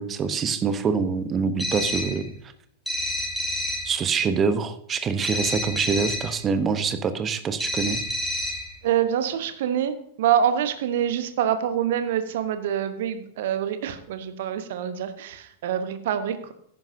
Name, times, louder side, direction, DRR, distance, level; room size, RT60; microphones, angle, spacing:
voice 1, 0.0-2.3 3.9-8.0, right 5 dB, 25° right, 11 dB, 0.9 m, -25 dB
sound 1, 1.6-2.2 2.9-3.9 5.2-6.3 7.6-8.7, left 1 dB, 5° left, 2.1 m, -29 dB
voice 2, 8.8-16.5, right 9 dB, 55° right, 10 dB, 1.1 m, -26 dB
14.5 x 10.5 x 2.7 m, 0.67 s
figure-of-eight pair, 90°, 0 cm